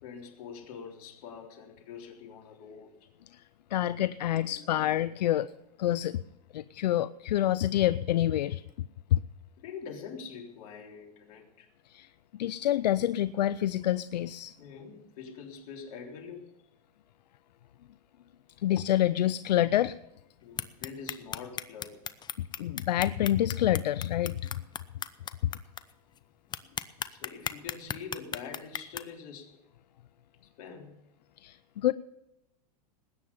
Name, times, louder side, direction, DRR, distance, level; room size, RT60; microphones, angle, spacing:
voice 1, 0.0-3.1 4.3-4.8 9.6-11.7 14.6-16.5 20.4-22.0 27.1-29.6 30.6-30.9, left 6 dB, 60° left, 3.7 m, -45 dB
voice 2, 3.7-5.5 5.8-6.2 6.5-8.6 9.1-9.2 11.9-12.1 12.4-14.5 18.6-20.0 22.4-24.4 25.4-25.5 31.4-31.9, left 12 dB, 80° left, 0.5 m, -27 dB
sound 1, 20.6-25.8 26.2-26.3 26.5-29.0, left 8 dB, 20° left, 0.7 m, -35 dB
20.0 x 9.5 x 5.6 m
hypercardioid pair, 115°, 21 cm